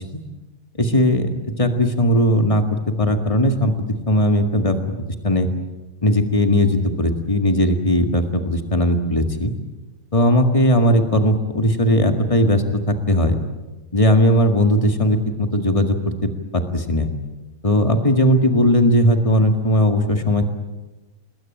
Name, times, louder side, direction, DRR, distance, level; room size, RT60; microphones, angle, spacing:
voice 1, 0.8-3.7 4.1-4.8 5.2-5.5 6.0-9.5 10.1-13.4 13.9-17.1 17.6-20.4, equal, 60° left, 5 dB, 0.3 m, -18 dB
28.0 x 21.0 x 9.0 m, 1.1 s
omnidirectional pair, 4.1 m